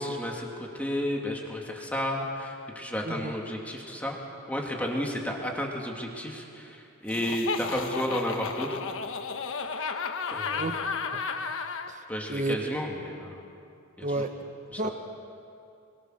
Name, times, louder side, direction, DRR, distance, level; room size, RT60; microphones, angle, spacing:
voice 1, 0.0-4.2 4.5-8.8 10.3-10.7 12.1-13.3 14.0-14.2 14.7-14.9, equal, 5° left, -1 dB, 2.8 m, -32 dB
voice 2, 3.0-3.3 10.5-10.8 11.1-11.2 11.9-12.0 12.3-12.6 14.0-14.3 14.8-14.9, right 2 dB, 35° right, 7 dB, 1.4 m, -31 dB
Laughter, 7.1-11.9, left 5 dB, 60° left, 1.3 m, -33 dB
26.0 x 22.5 x 6.7 m, 2.6 s
head